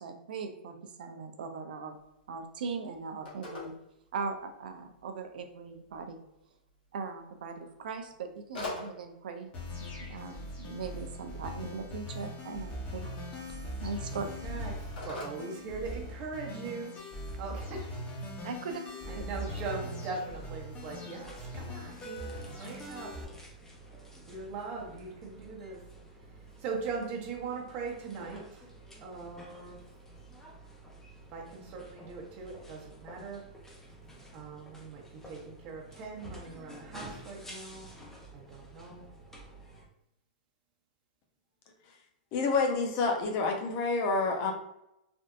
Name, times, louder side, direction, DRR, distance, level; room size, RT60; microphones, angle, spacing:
voice 1, 0.0-2.0 2.3-3.7 4.1-6.2 6.9-9.5 9.8-13.2 13.8-14.3 18.4-18.8 19.1-19.2, right 5 dB, 80° right, 6 dB, 0.5 m, -39 dB
Telephone, 1.9-16.4, left 2 dB, 90° left, 1.4 m, -49 dB
sound 1, 9.5-23.2, equal, 25° left, 1.0 m, -41 dB
voice 2, 14.1-16.9 17.4-18.0 19.1-23.2 24.2-25.8 26.6-28.7 29.0-29.8 31.3-33.4 34.3-37.9 38.3-39.1, right 4 dB, 40° right, -1 dB, 1.0 m, -40 dB
sound 2, 20.4-39.8, right 1 dB, 10° left, 0.7 m, -51 dB
voice 3, 42.3-44.5, left 4 dB, 45° left, 2 dB, 0.6 m, -28 dB
3.4 x 2.5 x 2.5 m, 0.85 s
hypercardioid pair, 135°, 5 cm